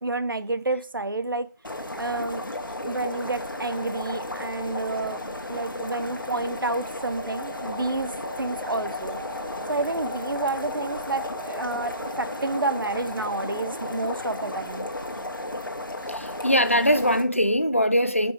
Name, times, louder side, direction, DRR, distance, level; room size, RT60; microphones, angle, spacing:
voice 1, 0.0-1.5 2.0-2.5 2.9-5.2 5.5-8.1 8.4-9.2 9.7-14.9, right 2 dB, 85° right, 0.6 m, -29 dB
sound 1, 1.6-17.2, left 1 dB, 75° left, 1.3 m, -34 dB
sound 2, 4.8-15.3, left 1 dB, 40° right, 1.3 m, -42 dB
voice 2, 16.1-18.3, equal, 40° left, 0.4 m, -22 dB
5.2 x 4.8 x 4.6 m
figure-of-eight pair, 180°, 11 cm